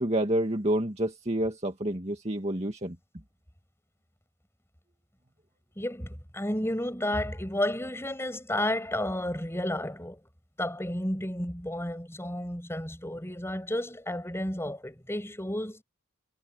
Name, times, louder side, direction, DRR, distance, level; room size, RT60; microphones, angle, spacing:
voice 1, 0.0-3.0, right 1 dB, 30° right, 2.1 m, -28 dB
voice 2, 5.8-10.2 10.6-15.8, left 1 dB, 10° left, 6.7 m, -32 dB
head